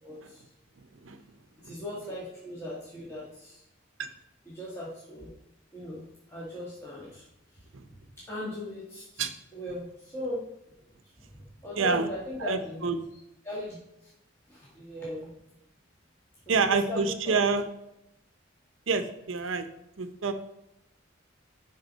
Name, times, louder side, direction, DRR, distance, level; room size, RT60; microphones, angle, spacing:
voice 1, 0.0-0.4 1.6-3.6 4.4-5.3 5.7-13.2 13.4-14.1 14.5-15.4 16.4-17.4, left 1 dB, 15° left, -8 dB, 1.5 m, -39 dB
voice 2, 11.8-12.1 12.4-13.0 16.5-17.6 18.9-19.6 20.0-20.3, right 4 dB, 80° right, 9 dB, 0.7 m, -27 dB
10.5 x 4.0 x 4.0 m, 0.84 s
head